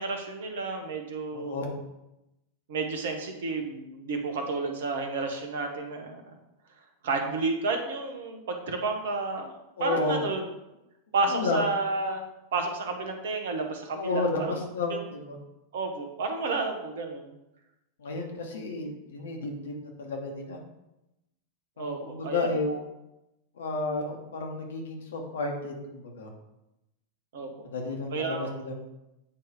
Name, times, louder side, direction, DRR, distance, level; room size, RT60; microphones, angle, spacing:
voice 1, 0.0-1.6 2.7-6.2 7.0-10.4 11.1-12.2 12.5-14.5 14.9-15.0 15.7-17.3 21.8-22.8 27.3-27.7 28.1-28.5, right 3 dB, 60° right, 4 dB, 1.1 m, -31 dB
voice 2, 1.3-1.7 9.8-10.2 11.3-11.6 13.9-15.4 18.0-20.6 21.8-22.8 23.5-26.3 27.5-28.7, left 3 dB, 65° left, 1 dB, 1.4 m, -32 dB
8.9 x 3.1 x 4.8 m, 0.91 s
figure-of-eight pair, 90°, 0 cm